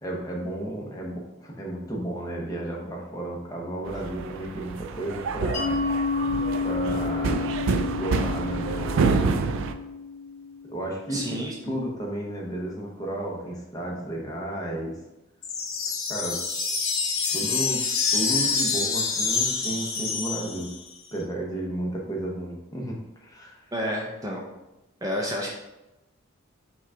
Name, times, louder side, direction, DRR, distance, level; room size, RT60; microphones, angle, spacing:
voice 1, 0.0-5.8 6.6-9.3 10.7-15.0 16.1-16.4 17.3-17.8 18.1-20.7 21.1-23.6, right 1 dB, 20° left, -2 dB, 0.8 m, -33 dB
sound 1, 3.9-9.7, right 4 dB, 65° right, 0.3 m, -28 dB
Mallet percussion, 5.5-10.9, left 4 dB, 55° left, 1.2 m, -30 dB
voice 2, 11.1-11.8 23.7-24.4 25.0-25.5, equal, 15° right, -2 dB, 0.5 m, -30 dB
sound 2, 15.4-20.9, left 5 dB, 80° left, 0.9 m, -26 dB
5.7 x 2.3 x 3.7 m, 0.97 s
head